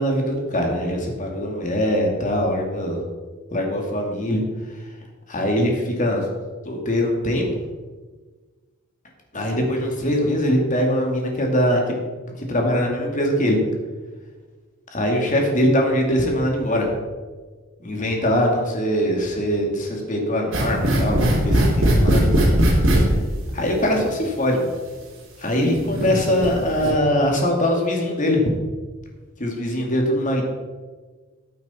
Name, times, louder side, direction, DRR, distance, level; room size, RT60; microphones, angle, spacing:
voice 1, 0.0-3.0 3.5-4.4 5.3-6.2 6.6-7.5 9.3-11.9 12.4-13.6 14.9-16.9 17.8-22.5 23.5-24.7 25.4-28.4 29.4-30.4, equal, 40° left, 1 dB, 2.5 m, -22 dB
sound 1, 20.5-23.0 24.1-24.2 24.9-25.0 25.7-26.5 26.7-26.9, right 1 dB, 70° right, 3.4 m, -19 dB
14.5 x 8.4 x 4.4 m, 1.4 s
head